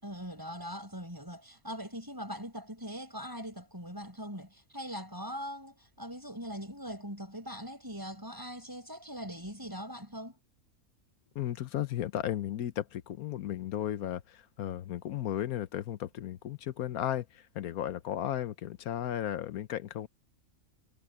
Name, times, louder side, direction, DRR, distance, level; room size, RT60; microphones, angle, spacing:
voice 1, 0.0-10.3, equal, 15° right, 7.0 m, -41 dB
voice 2, 11.3-20.1, left 11 dB, 85° left, 1.3 m, -35 dB
omnidirectional pair, 1.5 m